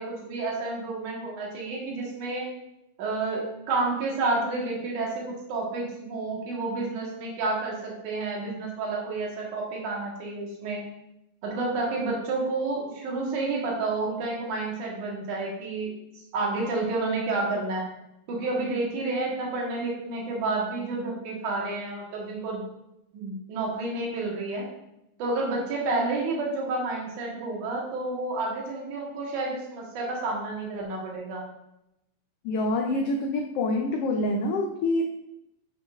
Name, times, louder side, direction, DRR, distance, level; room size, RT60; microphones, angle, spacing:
voice 1, 0.0-2.5 3.0-10.8 11.4-15.9 16.3-17.8 18.3-22.6 23.1-24.6 25.2-31.4, right 3 dB, 90° right, -2 dB, 3.0 m, -30 dB
voice 2, 32.4-35.1, left 2 dB, 80° left, 2 dB, 1.3 m, -26 dB
11.5 x 5.8 x 2.4 m, 0.85 s
omnidirectional pair, 3.4 m